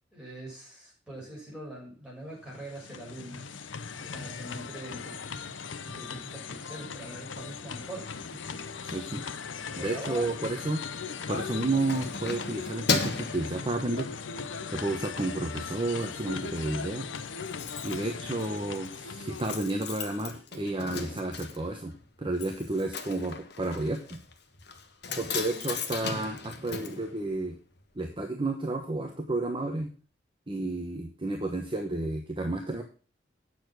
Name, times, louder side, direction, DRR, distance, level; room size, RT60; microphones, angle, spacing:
voice 1, 0.1-3.5 4.0-5.6 5.8-8.9 9.8-10.4 25.1-25.7, right 1 dB, 5° right, -5 dB, 6.6 m, -44 dB
sound 1, 2.4-20.4, left 5 dB, 85° left, 0.7 m, -39 dB
voice 2, 8.8-9.2 9.8-10.8 11.3-14.1 14.7-17.1 17.8-21.9 22.2-24.2 25.2-27.6 27.9-29.9 30.5-32.8, right 2 dB, 25° right, 3 dB, 1.1 m, -31 dB
Keys jangling, 11.3-14.4 14.8-15.1 15.4-16.1 16.4-16.5 16.7-16.8 17.0-27.8 28.1-28.2, left 4 dB, 60° left, 1.3 m, -36 dB
9.1 x 6.8 x 6.1 m, 0.37 s
head